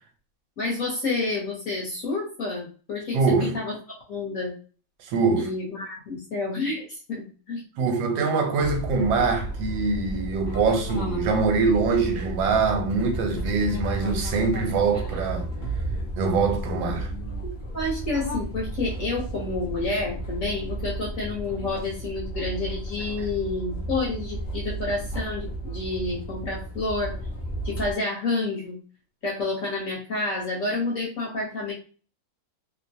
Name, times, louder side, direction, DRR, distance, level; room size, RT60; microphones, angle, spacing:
voice 1, 0.6-3.7 4.1-4.5 5.3-7.6 17.4-27.1 27.6-28.8 29.2-31.7, left 3 dB, 55° left, 1.1 m, -29 dB
voice 2, 3.1-3.5 5.0-5.5 7.8-15.5 16.2-17.1, right 4 dB, 80° right, 1.3 m, -23 dB
sound 1, 8.6-27.9, right 2 dB, 70° left, 0.5 m, -33 dB
3.1 x 2.1 x 2.7 m
omnidirectional pair, 2.1 m